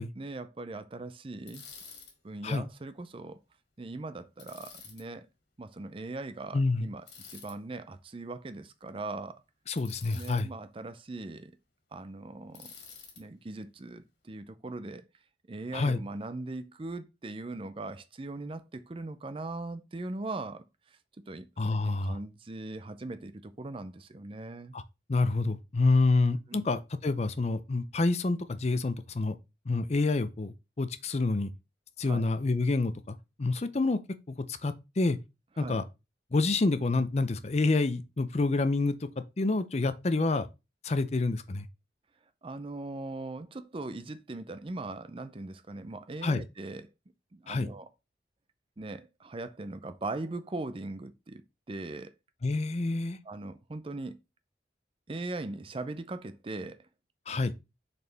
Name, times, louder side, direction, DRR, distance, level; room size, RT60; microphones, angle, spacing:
voice 1, 0.1-1.6 2.2-3.4 3.8-5.3 5.6-9.4 10.1-11.5 11.9-12.7 13.2-15.1 15.5-21.0 21.3-24.8 26.5-26.6 32.0-32.2 35.6-35.8 42.4-46.9 47.3-47.9 48.8-52.1 53.2-54.2 55.1-56.9, right 2 dB, 30° right, 0.5 m, -40 dB
Bicycle, 1.5-2.1 4.4-5.0 7.1-7.5 9.8-10.4 12.5-13.2, left 6 dB, 70° left, 2.3 m, -49 dB
voice 2, 6.5-6.9 9.7-10.5 15.7-16.0 21.6-22.2 24.7-24.8 25.1-29.4 29.7-31.5 32.0-34.0 34.3-35.2 35.6-35.8 36.3-38.9 39.4-40.5 40.8-41.7 46.2-46.4 47.5-47.7 52.4-53.2 57.3-57.5, left 3 dB, 35° left, 0.5 m, -28 dB
6.7 x 4.3 x 3.4 m
head